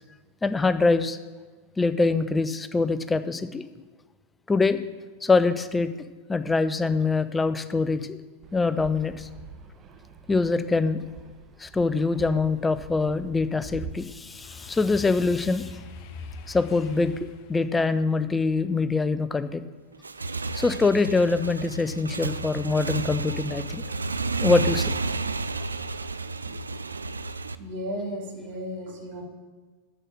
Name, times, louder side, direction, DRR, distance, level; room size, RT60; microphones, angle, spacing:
voice 1, 0.4-1.2 1.8-3.6 4.5-4.8 5.2-5.9 6.3-8.2 8.5-9.3 10.3-11.0 11.6-15.8 16.5-19.6 20.5-23.8 24.4-24.9, left 3 dB, 10° left, 12 dB, 0.5 m, -24 dB
Fixed-wing aircraft airplane, 8.4-13.9, right 6 dB, 30° right, 0.8 m, -44 dB
sound 1, 11.5-20.5 20.9-21.3, left 4 dB, 45° left, 0.9 m, -46 dB
Motorcycle / Engine, 19.9-27.6, right 3 dB, 75° right, 0.3 m, -31 dB
voice 2, 27.6-29.2, equal, 50° right, 0 dB, 2.5 m, -34 dB
6.5 x 6.5 x 7.4 m, 1.4 s
figure-of-eight pair, 90°, 0 cm